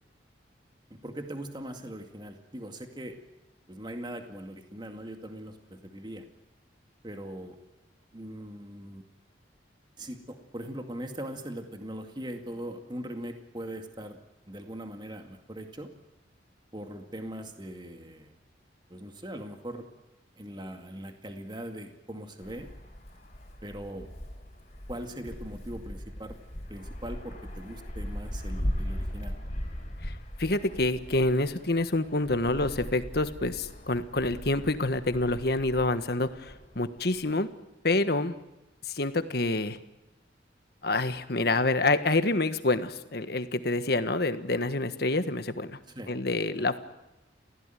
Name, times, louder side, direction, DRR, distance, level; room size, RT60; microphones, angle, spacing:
voice 1, 0.9-3.2 3.7-6.3 7.0-7.6 8.1-9.1 10.0-14.2 14.5-15.9 16.7-18.4 18.9-19.9 20.4-22.7 23.6-24.1 24.9-26.4 26.7-29.4 45.9-46.1, right 1 dB, 25° right, 5 dB, 2.2 m, -40 dB
Wind, 22.4-37.3, equal, 40° left, 4.2 m, -39 dB
voice 2, 30.0-37.5 37.8-38.3 38.8-39.8 40.8-45.7 46.1-46.8, left 2 dB, 60° left, 10 dB, 1.5 m, -27 dB
29.0 x 16.0 x 9.2 m, 1.0 s
head